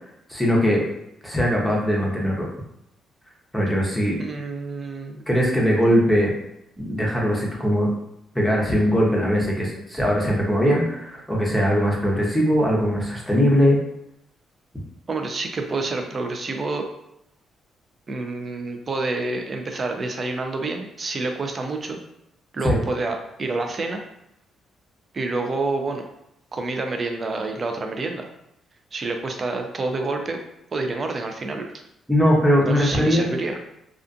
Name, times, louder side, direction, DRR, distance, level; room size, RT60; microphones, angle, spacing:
voice 1, 0.3-0.8 1.2-2.5 3.5-4.2 5.3-6.3 6.8-7.9 8.3-13.8 22.6-22.8 32.1-33.3, equal, 5° left, -3 dB, 0.7 m, -20 dB
voice 2, 4.2-5.2 15.1-16.9 18.1-22.0 22.5-24.0 25.1-26.0 26.5-28.3 28.9-30.4 30.7-31.7 32.6-33.6, right 3 dB, 40° right, 4 dB, 0.4 m, -28 dB
2.4 x 2.3 x 2.5 m, 0.81 s
cardioid pair, 90°, 0 cm